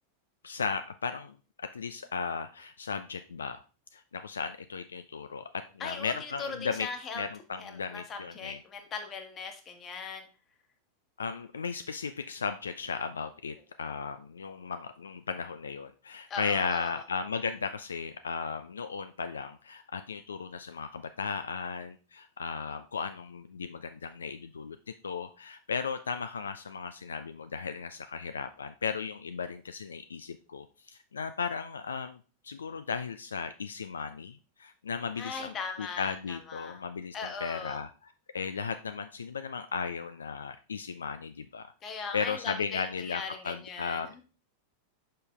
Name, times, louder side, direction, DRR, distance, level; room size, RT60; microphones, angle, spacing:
voice 1, 0.4-3.6 3.9-6.9 7.1-8.6 11.2-24.8 25.0-37.9 38.3-41.7 42.1-44.2, left 5 dB, 70° left, 10 dB, 0.3 m, -36 dB
voice 2, 5.8-7.3 7.6-10.3 16.3-17.0 35.2-36.8 37.1-37.8 41.8-44.2, left 5 dB, 25° left, 5 dB, 1.4 m, -39 dB
6.6 x 5.5 x 3.3 m, 0.35 s
figure-of-eight pair, 90°, 0 cm